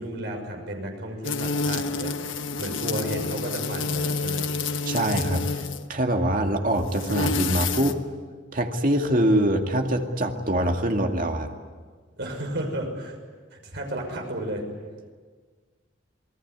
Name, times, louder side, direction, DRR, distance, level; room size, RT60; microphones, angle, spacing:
voice 1, 0.0-2.1 2.6-4.5 12.2-13.1 13.5-14.6, right 1 dB, 60° right, 2 dB, 6.4 m, -32 dB
sound 1, 1.2-5.9 6.8-7.9, left 4 dB, 90° left, 1.4 m, -28 dB
voice 2, 4.9-5.6 5.9-8.0 8.5-11.5, right 1 dB, 45° right, 4 dB, 2.3 m, -24 dB
27.5 x 20.5 x 9.6 m, 1.5 s
head